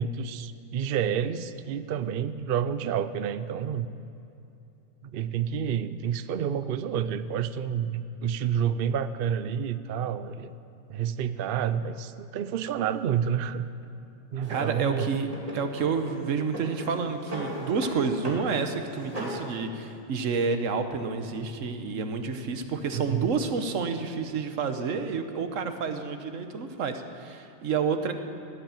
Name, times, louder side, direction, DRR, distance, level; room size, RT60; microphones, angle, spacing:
voice 1, 0.0-3.9 5.0-10.5 10.9-13.7 14.3-15.1 22.9-23.3, right 8 dB, 60° right, 13 dB, 0.7 m, -29 dB
Drawer open or close, 14.4-14.7 15.3-16.2 16.5-18.0 18.2-18.5 18.8-19.4, right 1 dB, 30° right, 2.7 m, -37 dB
voice 2, 14.5-28.1, right 5 dB, 85° right, 8 dB, 1.3 m, -29 dB
Laughter, 16.1-19.5 19.8-19.9 20.2-20.3, left 1 dB, 75° left, 3.3 m, -50 dB
16.0 x 8.2 x 8.8 m, 2.8 s
omnidirectional pair, 1.3 m